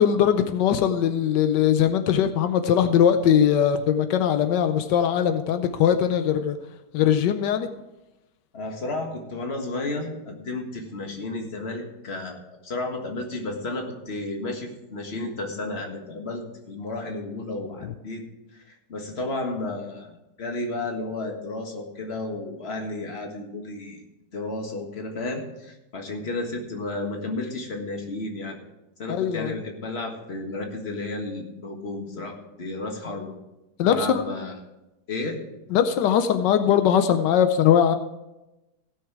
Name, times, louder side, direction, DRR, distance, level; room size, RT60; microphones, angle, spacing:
voice 1, 0.0-6.6 6.9-7.7 29.1-29.6 33.8-34.2 35.7-38.0, left 9 dB, 85° left, 9 dB, 1.3 m, -20 dB
voice 2, 8.5-18.2 18.5-24.0 24.3-28.6 29.0-32.3 32.6-33.3 33.8-34.6 35.1-35.4, left 2 dB, 40° left, 2 dB, 1.8 m, -32 dB
16.5 x 6.3 x 4.7 m, 0.97 s
omnidirectional pair, 1.9 m